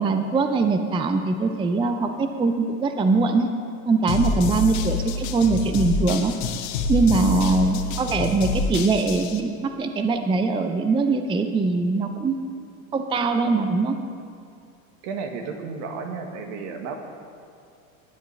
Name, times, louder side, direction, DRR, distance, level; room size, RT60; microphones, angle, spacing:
voice 1, 0.0-3.5 3.9-6.3 6.9-12.4 12.9-14.0, right 3 dB, 10° right, 7 dB, 0.5 m, -22 dB
sound 1, 4.1-9.4, left 3 dB, 60° left, 1.2 m, -27 dB
voice 2, 7.1-7.5 15.0-17.0, right 5 dB, 60° right, 4 dB, 1.7 m, -33 dB
18.5 x 8.8 x 3.3 m, 2.4 s
hypercardioid pair, 100°, 42 cm